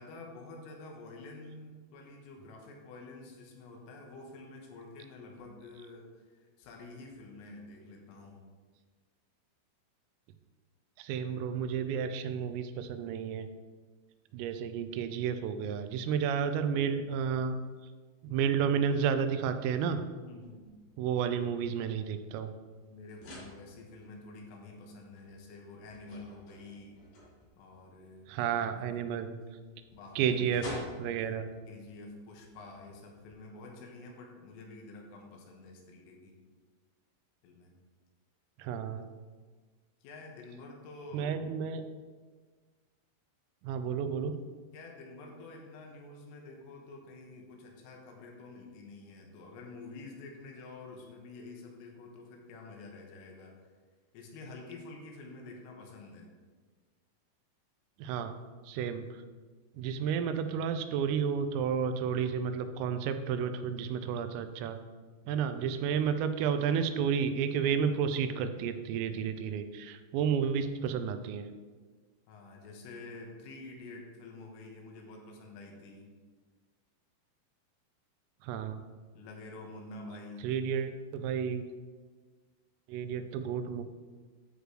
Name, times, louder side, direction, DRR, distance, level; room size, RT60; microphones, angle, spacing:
voice 1, 0.0-8.4 20.2-20.7 22.7-27.0 27.6-29.0 29.9-31.4 31.7-36.4 37.4-37.7 40.0-41.4 44.7-53.7 54.1-56.3 72.3-76.1 79.1-80.5, left 3 dB, 85° left, 1 dB, 3.8 m, -48 dB
voice 2, 11.0-13.5 14.3-17.6 18.2-20.0 21.0-22.5 28.3-29.3 30.2-31.5 38.6-39.0 41.1-41.8 43.6-44.4 58.0-58.4 58.7-59.2 59.8-64.8 65.3-71.5 78.4-78.8 80.4-81.6 82.9-83.8, right 7 dB, 90° right, 9 dB, 3.2 m, -31 dB
sound 1, 20.4-33.3, equal, 45° left, 3.5 m, -51 dB
9.8 x 8.1 x 3.2 m, 1.4 s
omnidirectional pair, 5.8 m